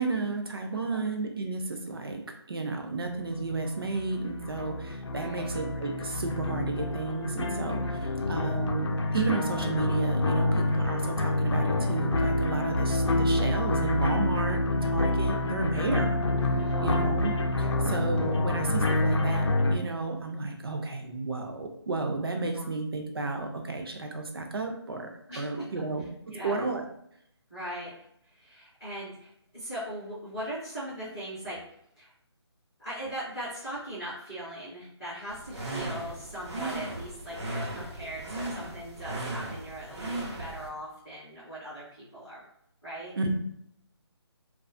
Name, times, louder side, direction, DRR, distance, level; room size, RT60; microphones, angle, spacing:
voice 1, 0.0-2.2 2.5-26.8 43.2-43.3, right 3 dB, 60° right, 4 dB, 0.5 m, -32 dB
voice 2, 0.7-1.1 5.1-5.5 7.8-8.3 16.6-17.0 17.6-17.9 22.5-22.7 25.3-25.7 26.3-26.6 27.5-31.6 32.0-32.1 32.8-42.4 42.8-43.1, equal, 5° left, -17 dB, 0.4 m, -40 dB
sound 1, 3.4-19.8, left 2 dB, 90° left, 0.5 m, -27 dB
sound 2, 35.3-40.7, right 2 dB, 75° right, 0.9 m, -36 dB
2.3 x 2.3 x 2.5 m, 0.72 s
hypercardioid pair, 175°, 14 cm